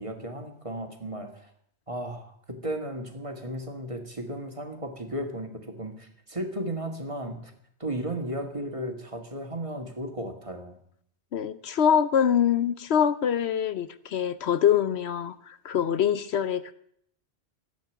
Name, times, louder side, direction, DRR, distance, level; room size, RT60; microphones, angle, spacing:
voice 1, 0.0-1.5 1.9-7.5 7.8-10.8, right 1 dB, 30° right, 5 dB, 2.0 m, -35 dB
voice 2, 11.3-16.7, left 8 dB, 70° left, 14 dB, 1.0 m, -24 dB
15.0 x 8.3 x 9.2 m, 0.69 s
omnidirectional pair, 1.2 m